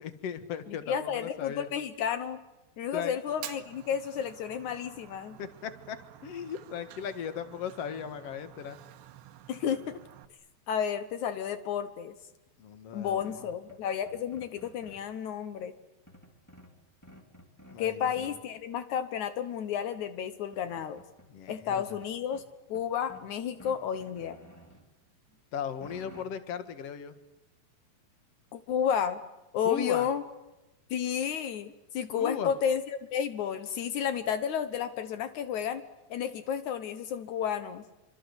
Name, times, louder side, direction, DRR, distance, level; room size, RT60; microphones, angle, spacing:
voice 1, 0.0-1.7 2.9-3.2 5.4-6.0 6.2-8.8 12.6-13.5 17.7-18.3 21.3-21.8 25.5-27.2 29.6-30.1 32.2-32.5, left 8 dB, 55° left, 10 dB, 1.8 m, -37 dB
voice 2, 0.7-2.4 2.8-5.4 9.5-10.0 10.7-12.1 12.9-15.7 17.8-21.0 21.5-22.4 22.7-24.4 28.5-29.2 29.5-30.2 30.9-35.8 36.1-37.8, left 8 dB, 90° left, 10 dB, 1.6 m, -32 dB
Fire, 3.3-10.3, right 12 dB, 80° right, 3.5 m, -50 dB
sound 1, 13.2-15.1 16.1-17.8 18.2-18.6 19.9-20.0 20.3-21.6 22.0-23.3 23.6-24.8 25.3-26.2, equal, 5° left, 3.6 m, -54 dB
28.0 x 25.5 x 8.1 m, 0.98 s
omnidirectional pair, 5.3 m